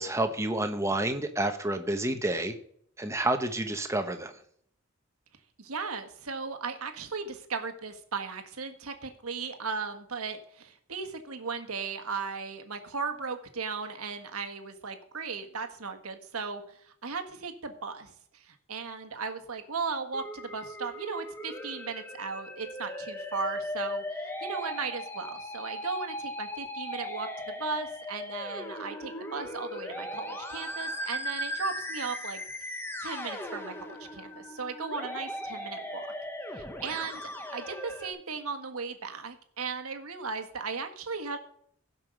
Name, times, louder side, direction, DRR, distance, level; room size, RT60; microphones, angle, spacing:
voice 1, 0.0-2.5 3.0-4.3, right 1 dB, 15° right, 7 dB, 1.0 m, -29 dB
voice 2, 5.6-18.1 18.5-32.4 33.0-36.1 36.5-41.4, right 4 dB, 90° right, 7 dB, 1.5 m, -36 dB
Musical instrument, 20.1-38.1, left 1 dB, 10° left, 1.1 m, -38 dB
16.0 x 5.5 x 6.4 m, 0.65 s
head